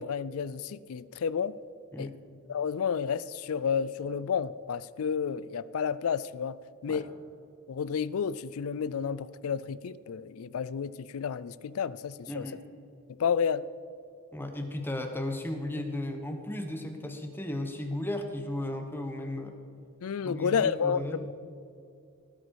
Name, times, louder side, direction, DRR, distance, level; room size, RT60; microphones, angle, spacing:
voice 1, 0.0-1.6 2.0-2.1 2.5-6.6 6.8-7.1 7.7-12.5 13.1-13.6 20.0-21.3, left 6 dB, 70° left, 19 dB, 0.4 m, -31 dB
voice 2, 12.3-12.6 14.3-19.6 20.2-21.3, left 1 dB, 10° left, 5 dB, 1.0 m, -35 dB
18.0 x 8.3 x 4.7 m, 2.5 s
head